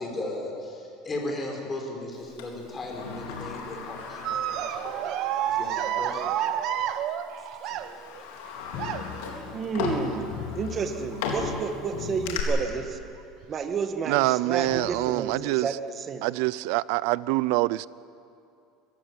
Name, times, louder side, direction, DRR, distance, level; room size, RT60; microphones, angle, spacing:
voice 1, 0.0-5.0 5.5-6.3 7.4-7.7, left 2 dB, 20° left, 1 dB, 5.2 m, -36 dB
Sliding door, 2.4-5.6 6.0-6.1 7.0-7.2 7.7-12.4, left 5 dB, 80° left, 3.9 m, -36 dB
sound 1, 4.2-8.2 8.8-9.3 10.3-10.7 11.1-11.2 12.5-12.6 13.4-13.6, right 10 dB, 50° right, 1.1 m, -30 dB
sound 2, 8.7-10.0 10.3-11.6 11.9-13.2 13.8-13.9 14.6-15.5, left 10 dB, 60° left, 1.4 m, -40 dB
voice 2, 9.5-10.3 10.6-13.0 13.5-16.2, right 6 dB, 30° right, 6 dB, 1.7 m, -31 dB
voice 3, 14.1-15.7 16.2-17.9, right 20 dB, 70° right, 20 dB, 0.5 m, -25 dB
24.0 x 15.5 x 9.6 m, 2.5 s
supercardioid pair, 140°, 0 cm